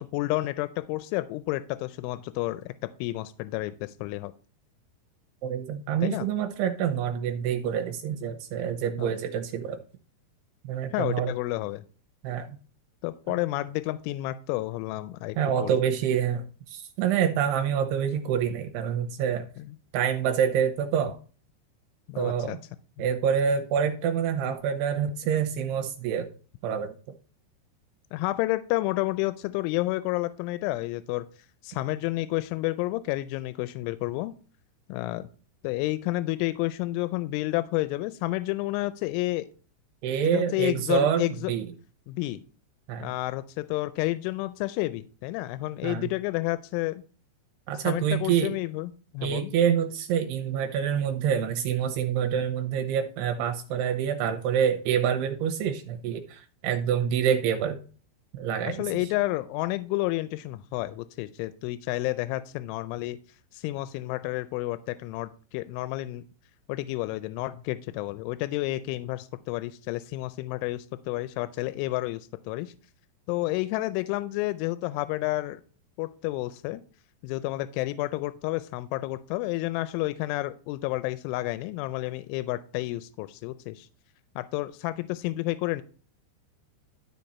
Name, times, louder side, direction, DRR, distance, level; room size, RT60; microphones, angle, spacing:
voice 1, 0.0-2.7 3.0-4.3 6.0-6.3 9.0-9.1 10.9-11.8 13.0-15.4 15.6-15.7 19.6-19.8 22.1-22.6 23.0-23.1 28.1-31.3 31.6-34.3 34.9-35.3 35.6-39.5 40.2-41.5 42.1-42.4 43.0-47.0 47.8-49.5 58.7-63.2 63.5-66.2 66.7-72.7 73.3-75.6 76.0-76.8 77.2-83.9 84.4-85.8, left 18 dB, 90° left, 13 dB, 3.0 m, -30 dB
voice 2, 5.4-9.8 10.7-11.3 12.2-12.6 15.4-19.5 19.9-21.2 22.2-22.6 23.0-26.3 26.6-26.9 40.0-41.7 42.9-43.1 45.8-46.1 47.7-48.5 49.2-57.8 58.3-59.0, right 8 dB, 80° right, 6 dB, 2.5 m, -27 dB
12.0 x 5.3 x 4.2 m, 0.39 s
omnidirectional pair, 5.4 m